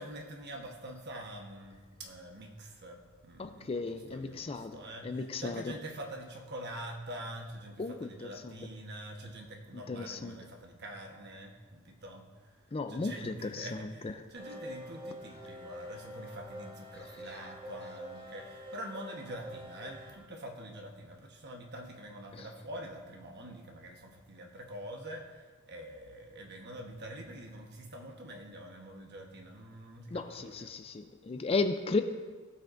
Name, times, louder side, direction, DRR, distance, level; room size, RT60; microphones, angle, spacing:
voice 1, 0.0-12.6 12.9-30.7, right 1 dB, 50° right, 3 dB, 1.1 m, -45 dB
voice 2, 3.4-4.7 5.0-5.7 7.8-8.5 9.9-10.4 12.7-13.8 14.0-14.1 22.4-22.5 30.1-32.0, left 3 dB, 25° left, 9 dB, 0.4 m, -34 dB
sound 1, 14.3-20.1, equal, 25° right, 1.4 m, -46 dB
17.0 x 5.7 x 2.5 m, 1.4 s
head